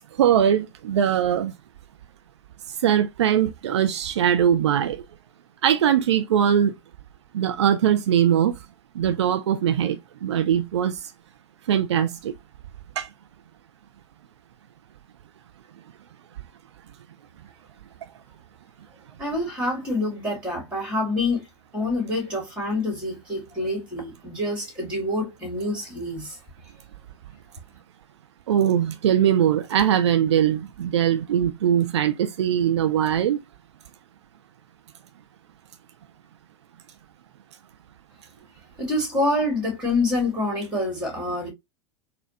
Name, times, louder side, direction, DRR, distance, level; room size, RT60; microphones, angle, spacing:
voice 1, 0.2-1.5 2.8-5.0 5.6-6.7 7.3-8.5 9.0-11.0 11.7-12.3 13.0-13.1 28.5-33.4, right 9 dB, 70° right, 0.4 m, -21 dB
voice 2, 19.2-21.5 21.7-26.4 38.8-41.5, left 2 dB, 5° right, 1.8 m, -26 dB
4.1 x 2.2 x 2.7 m
figure-of-eight pair, 85°, 15 cm